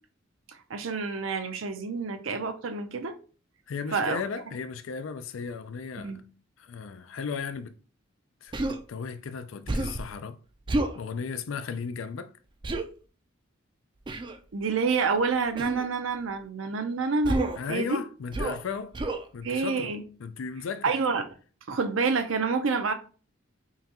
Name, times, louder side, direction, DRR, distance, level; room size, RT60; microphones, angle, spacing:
voice 1, 0.5-3.1 3.9-4.2 6.0-6.2 14.5-18.0 19.4-20.0 20.8-21.3 21.7-22.9, right 4 dB, 75° right, 0.6 m, -28 dB
voice 2, 3.7-6.1 6.6-7.8 8.4-10.4 10.9-12.3 17.6-19.0 19.3-19.9 20.2-20.9, left 5 dB, 75° left, 0.4 m, -35 dB
Human voice, 8.5-8.8 9.7-10.1 10.7-11.0 12.6-12.9 14.1-14.4 15.6-15.9 17.2-17.6 18.3-18.6 18.9-19.2, right 2 dB, 25° right, 0.4 m, -29 dB
5.6 x 2.3 x 2.9 m
head